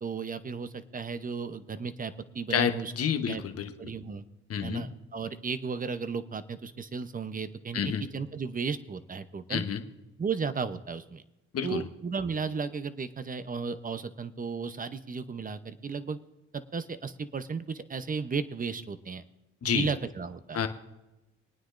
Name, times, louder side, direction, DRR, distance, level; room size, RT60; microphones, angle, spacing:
voice 1, 0.0-2.9 3.3-3.4 3.8-4.2 4.6-7.8 8.1-9.6 10.2-11.2 11.6-16.2 16.5-19.2 19.6-20.6, right 5 dB, 30° right, 12 dB, 0.8 m, -34 dB
voice 2, 2.5-3.7 4.5-4.8 7.7-8.0 9.5-9.8 11.5-11.9 19.6-19.9 20.5-20.7, left 7 dB, 50° left, 6 dB, 1.2 m, -29 dB
25.0 x 9.5 x 2.6 m, 1.0 s
cardioid pair, 90°, 30 cm